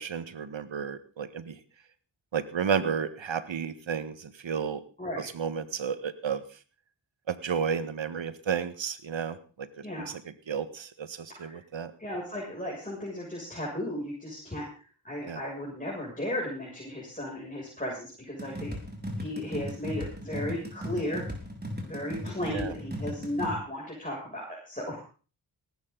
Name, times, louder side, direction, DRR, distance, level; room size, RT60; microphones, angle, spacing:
voice 1, 0.0-1.5 2.3-4.8 5.2-6.4 7.3-9.7 10.0-10.2 10.5-11.9 15.3-15.4 22.5-22.7, right 6 dB, 65° right, 13 dB, 1.5 m, -32 dB
voice 2, 12.0-14.6 15.0-18.7 19.1-21.2 21.8-25.0, left 1 dB, 15° left, -3 dB, 6.9 m, -35 dB
sound 1, 18.4-23.5, equal, 20° right, 5.4 m, -37 dB
18.5 x 12.0 x 4.0 m, 0.37 s
cardioid pair, 45°, 49 cm